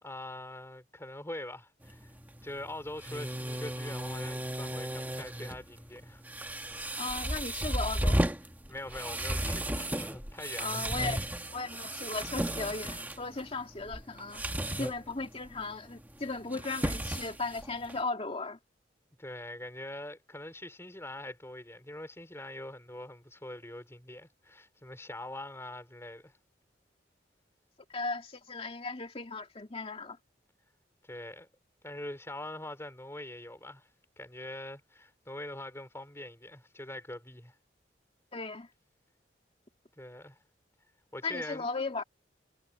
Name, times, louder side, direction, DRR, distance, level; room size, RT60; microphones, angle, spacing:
voice 1, 0.0-2.1 2.4-6.2 8.7-10.8 19.2-26.3 31.0-31.5 31.8-33.9 34.2-37.5 40.0-40.4 41.1-41.7, left 1 dB, 15° left, 4.7 m, -43 dB
sound 1, 1.8-18.0, right 1 dB, 10° right, 1.6 m, -35 dB
voice 2, 7.0-8.2 10.6-11.2 11.5-14.4 14.8-18.6 27.9-30.2 38.3-38.7 41.2-42.0, left 3 dB, 35° left, 2.3 m, -36 dB
head